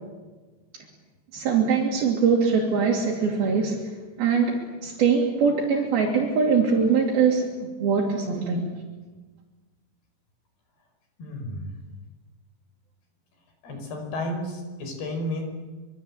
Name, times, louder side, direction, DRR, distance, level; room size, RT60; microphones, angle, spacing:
voice 1, 1.3-3.9 4.2-8.7, right 5 dB, 70° right, -1 dB, 4.7 m, -22 dB
voice 2, 11.2-11.7 13.6-15.4, left 1 dB, 80° left, 5 dB, 7.5 m, -32 dB
26.0 x 25.0 x 8.8 m, 1.3 s
omnidirectional pair, 4.6 m